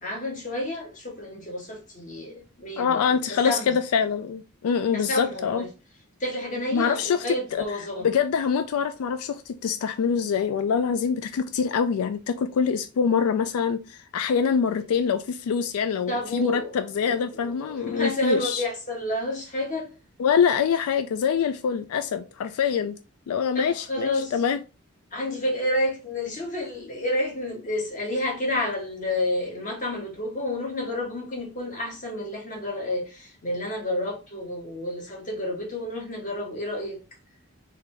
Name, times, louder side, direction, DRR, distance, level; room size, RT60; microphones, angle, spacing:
voice 1, 0.0-3.8 4.9-5.7 6.2-8.1 14.7-14.8 16.1-16.8 17.0-19.9 23.5-24.4 25.1-37.0, left 1 dB, 35° left, 1.3 m, -30 dB
voice 2, 2.8-5.6 6.7-7.6 8.0-18.6 20.2-23.0 23.3-24.6, left 6 dB, 85° left, 0.3 m, -25 dB
3.8 x 2.8 x 3.3 m
head